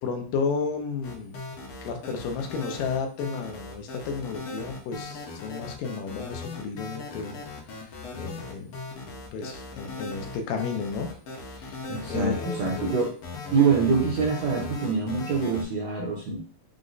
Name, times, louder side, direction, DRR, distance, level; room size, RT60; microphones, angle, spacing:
voice 1, 0.0-1.3 1.8-7.4 7.7-7.9 8.2-8.7 9.0-11.1 11.4-11.8 12.1-12.9, left 5 dB, 80° left, 4 dB, 2.3 m, -32 dB
sound 1, 1.0-15.6, left 3 dB, 60° left, 1.5 m, -38 dB
voice 2, 11.9-13.1 13.5-16.4, right 5 dB, 70° right, -2 dB, 1.6 m, -25 dB
6.1 x 2.2 x 3.9 m, 0.44 s
omnidirectional pair, 3.9 m